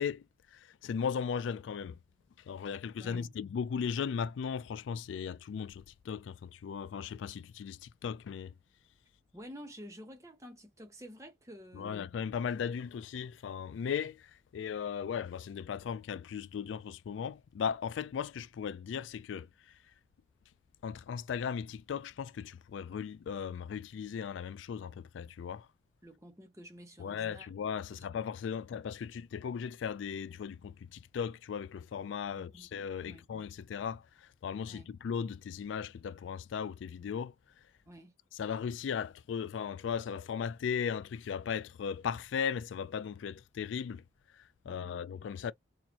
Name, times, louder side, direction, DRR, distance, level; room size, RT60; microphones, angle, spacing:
voice 1, 0.0-2.0 2.4-8.5 11.7-19.9 20.8-25.7 27.0-37.7 38.3-45.5, left 7 dB, 85° left, 0.3 m, -37 dB
voice 2, 3.0-3.4 9.3-12.0 26.0-27.5 32.3-32.7 33.0-33.3 34.7-34.9 37.9-38.1 44.6-45.1, equal, 15° right, 0.9 m, -50 dB
4.3 x 2.5 x 2.8 m
head